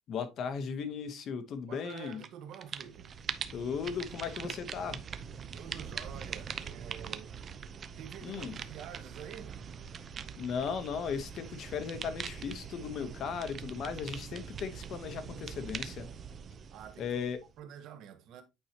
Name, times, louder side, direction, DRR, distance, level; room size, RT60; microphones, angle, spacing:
voice 1, 0.1-2.2 3.5-5.0 8.2-8.5 10.4-16.1 17.0-17.4, left 6 dB, 40° left, 0.9 m, -36 dB
voice 2, 1.7-3.1 5.5-7.3 8.0-9.5 16.7-17.1 17.6-18.4, right 9 dB, 50° right, 1.2 m, -47 dB
sound 1, 1.9-2.3 2.5-17.6, right 7 dB, 30° right, 0.5 m, -42 dB
8.7 x 4.7 x 2.8 m
cardioid pair, 165°, 0 cm